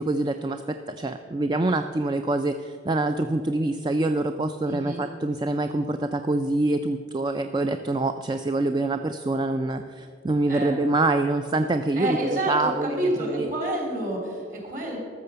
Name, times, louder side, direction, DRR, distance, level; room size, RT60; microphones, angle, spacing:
voice 1, 0.0-13.5, right 2 dB, 25° right, 8 dB, 0.3 m, -25 dB
voice 2, 4.7-5.0 10.5-10.7 11.9-15.0, right 1 dB, 45° right, 0 dB, 3.0 m, -29 dB
13.5 x 6.6 x 6.8 m, 2.2 s
head